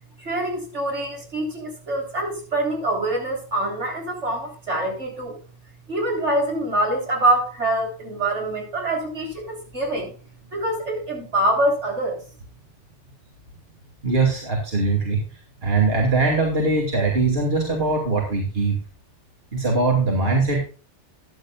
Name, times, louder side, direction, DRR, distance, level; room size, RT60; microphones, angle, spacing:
voice 1, 0.2-5.4 5.9-10.1 10.5-12.2, right 1 dB, 75° right, 0 dB, 4.1 m, -25 dB
voice 2, 14.0-15.2 15.6-18.8 19.5-20.6, right 3 dB, 55° right, 0 dB, 2.8 m, -21 dB
14.0 x 10.5 x 2.4 m, 0.37 s
omnidirectional pair, 1.2 m